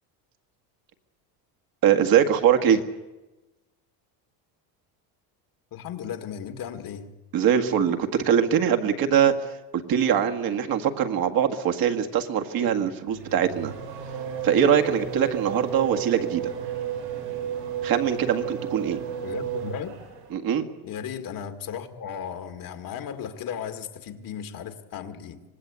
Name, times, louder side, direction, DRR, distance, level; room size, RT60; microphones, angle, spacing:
voice 1, 1.8-2.8 7.3-13.7 14.4-16.5 17.8-19.0 20.3-20.7, right 8 dB, 50° right, 6 dB, 1.9 m, -22 dB
voice 2, 5.7-7.1 19.2-20.0 20.8-25.4, left 8 dB, 45° left, 9 dB, 2.0 m, -35 dB
Race car auto racing / Accelerating revving vroom, 13.1-20.3, right 8 dB, 80° right, 7.3 m, -33 dB
25.5 x 19.0 x 8.3 m, 1.1 s
cardioid pair, 130°, 45 cm